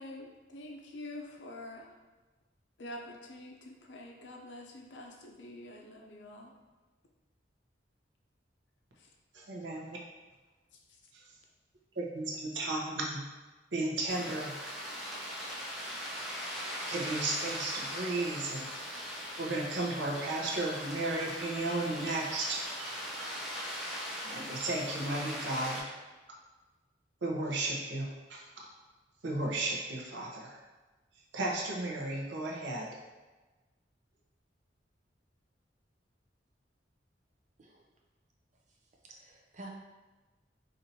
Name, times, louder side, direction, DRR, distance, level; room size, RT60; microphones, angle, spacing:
voice 1, 0.0-1.9 2.8-6.5 9.0-9.1 9.7-10.1 10.9-11.0, left 1 dB, 75° left, 1 dB, 0.6 m, -47 dB
voice 2, 9.3-10.0 11.1-11.2 12.0-13.2 13.7-14.6 16.9-18.7 19.4-22.6 23.9-25.9 27.2-28.5 29.2-30.6 31.3-32.9, right 2 dB, 80° right, -2 dB, 0.7 m, -34 dB
sound 1, 14.1-25.8, equal, ahead, 0.7 m, -40 dB
voice 3, 39.0-39.7, right 2 dB, 40° right, -1 dB, 0.6 m, -49 dB
4.3 x 2.6 x 2.7 m, 1.2 s
head